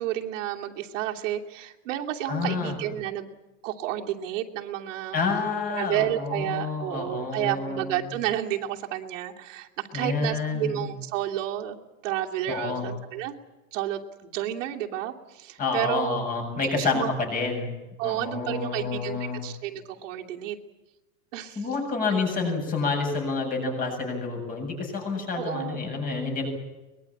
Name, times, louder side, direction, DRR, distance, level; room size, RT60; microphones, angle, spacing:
voice 1, 0.0-3.3 3.6-5.2 5.7-11.8 12.0-13.3 13.7-16.2 16.7-17.1 18.0-20.6 21.3-21.7 25.3-25.9, right 12 dB, 70° right, 0 dB, 2.9 m, -31 dB
voice 2, 2.3-2.8 5.1-8.0 9.9-10.9 12.5-12.9 15.6-17.7 18.0-19.4 21.6-26.5, left 4 dB, 20° left, 3 dB, 7.7 m, -28 dB
23.5 x 21.5 x 8.7 m, 1.1 s
supercardioid pair, 165°, 38 cm